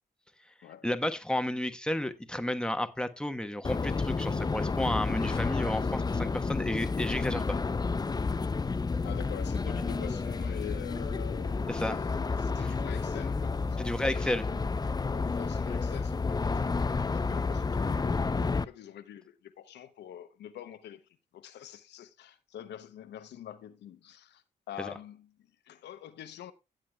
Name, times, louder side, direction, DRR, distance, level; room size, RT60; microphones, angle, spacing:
voice 1, 0.8-7.6 11.7-12.0 13.8-14.4 24.8-24.9, left 1 dB, 5° left, 1.2 m, -32 dB
sound 1, 3.6-18.6, left 4 dB, 20° left, 0.5 m, -30 dB
voice 2, 9.0-14.3 15.1-26.5, left 10 dB, 75° left, 0.8 m, -46 dB
16.0 x 7.6 x 2.3 m
supercardioid pair, 50°, 18 cm